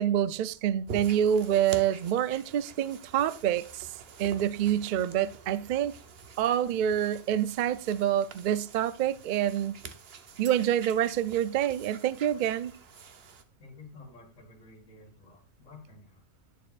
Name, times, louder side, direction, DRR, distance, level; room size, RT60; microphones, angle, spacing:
voice 1, 0.0-3.9 4.2-5.9 6.4-9.8 10.4-12.7, right 10 dB, 85° right, 0.4 m, -27 dB
sound 1, 0.9-13.4, right 5 dB, 50° right, 1.0 m, -47 dB
voice 2, 13.6-16.2, left 3 dB, 70° left, 2.3 m, -51 dB
10.0 x 6.7 x 2.5 m
omnidirectional pair, 1.4 m